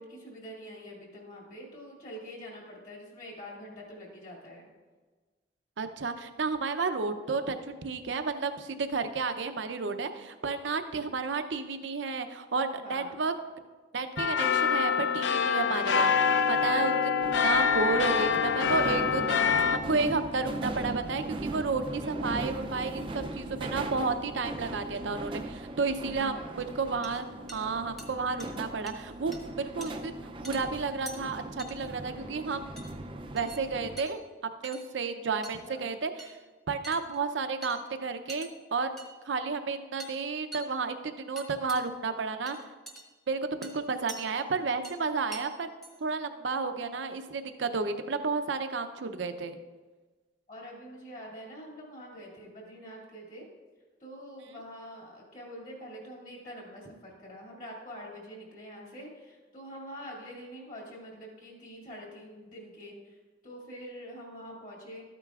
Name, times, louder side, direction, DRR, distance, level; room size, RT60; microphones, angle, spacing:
voice 1, 0.0-4.7 12.8-13.1 26.3-26.6 32.0-32.5 35.6-35.9 50.5-53.5 54.0-63.2 63.4-65.0, equal, 45° left, -2 dB, 2.4 m, -45 dB
voice 2, 5.8-13.3 13.9-16.1 16.5-27.3 27.5-30.2 30.4-32.7 33.3-34.2 34.6-36.4 36.7-38.9 39.3-42.6 43.3-45.7 46.0-49.6, right 4 dB, 80° right, 9 dB, 0.6 m, -32 dB
sound 1, 14.2-19.8, left 6 dB, 80° left, 0.5 m, -25 dB
sound 2, 17.2-34.0, right 2 dB, 30° right, 0.4 m, -39 dB
sound 3, 26.6-26.7 27.0-27.2 27.5-27.6 28.0-28.1 28.4-28.5 28.9-29.0 29.3-29.4 29.8-29.9 30.4-30.6 31.1-31.2 31.6-31.7 32.8-32.9 33.4-33.6 34.0-34.2 34.6-34.9 35.4-35.7 36.2-36.4 36.8-37.2 37.6-37.8 38.3-38.5 39.0-39.1 40.0-40.1 40.5-40.7 41.4-41.9 42.5-43.0 43.6-44.2 44.8-45.0 45.3-45.4 45.8-45.9, right 1 dB, ahead, 0.8 m, -44 dB
12.5 x 8.9 x 2.4 m, 1.3 s
head